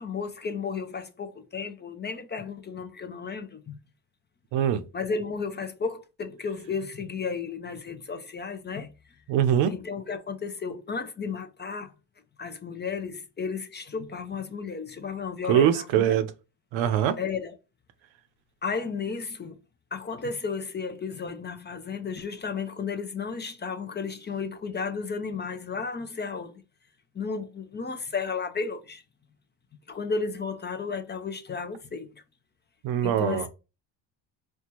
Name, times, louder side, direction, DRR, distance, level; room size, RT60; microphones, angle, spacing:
voice 1, 0.0-3.8 4.9-8.9 9.7-11.9 12.4-16.2 17.2-17.6 18.6-19.6 19.9-26.6 27.1-29.0 29.9-32.1 33.0-33.5, left 5 dB, 25° left, 0.4 m, -33 dB
voice 2, 4.5-4.8 9.3-9.7 15.5-16.3 16.7-17.2 32.8-33.5, right 9 dB, 80° right, 0.7 m, -23 dB
4.3 x 2.2 x 2.9 m
cardioid pair, 85°, 45 cm